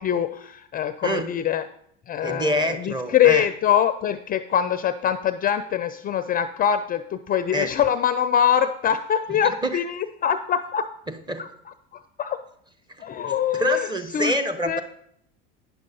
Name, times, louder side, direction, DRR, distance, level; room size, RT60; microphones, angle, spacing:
voice 1, 0.0-1.6 2.1-10.9 11.4-11.5 11.9-12.4 13.0-13.9 14.1-14.3 14.7-14.8, left 9 dB, 30° left, 11 dB, 0.4 m, -23 dB
voice 2, 2.2-3.5 7.5-7.7 9.3-9.8 11.1-11.4 13.0-13.1 13.5-14.8, right 1 dB, 15° right, 8 dB, 0.9 m, -26 dB
9.1 x 6.3 x 4.1 m, 0.68 s
supercardioid pair, 100°, 30 cm